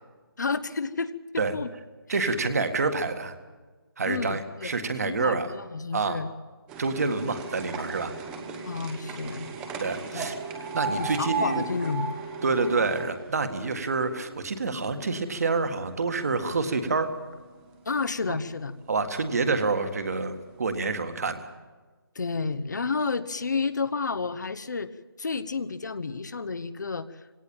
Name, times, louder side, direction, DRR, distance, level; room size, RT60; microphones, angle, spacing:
voice 1, 0.4-1.7 2.5-2.6 4.0-4.7 5.0-6.3 8.6-9.5 10.1-10.3 10.8-12.1 17.9-18.7 22.1-24.9 25.2-27.2, left 4 dB, 50° left, 13 dB, 1.0 m, -31 dB
voice 2, 2.1-3.3 4.0-5.5 5.9-6.2 6.8-8.1 9.8-11.7 12.4-17.1 18.3-18.4 18.9-21.5, right 4 dB, 40° right, 8 dB, 1.8 m, -27 dB
sound 1, 6.7-14.9 15.3-16.2 16.9-17.0 17.3-17.4 17.6-17.7 18.6-18.7 19.3-19.4 20.1-20.2 20.6-20.7, right 4 dB, 5° right, 0.9 m, -36 dB
20.0 x 17.5 x 8.8 m, 1.3 s
figure-of-eight pair, 170°, 12 cm